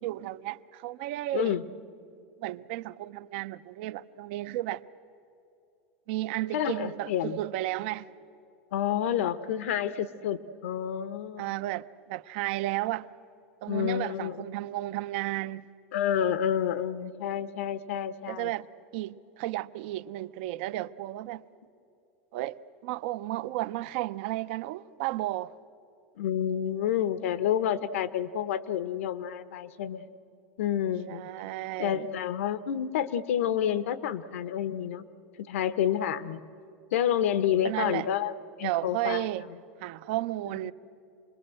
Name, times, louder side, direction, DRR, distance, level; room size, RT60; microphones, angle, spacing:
voice 1, 0.0-1.6 2.4-4.8 6.1-8.1 11.4-13.1 13.6-15.7 18.3-18.7 18.9-21.4 22.3-25.5 31.1-32.1 37.6-38.1 38.6-39.5 39.8-40.7, right 16 dB, 55° right, 0.6 m, -33 dB
voice 2, 1.3-1.6 6.5-7.4 8.7-11.6 13.7-14.4 15.9-18.5 26.2-30.0 30.6-31.3 31.8-35.1 35.4-36.4 36.9-38.3 38.6-39.3, left 9 dB, 85° left, 1.0 m, -29 dB
27.0 x 21.0 x 7.7 m
supercardioid pair, 160°, 7 cm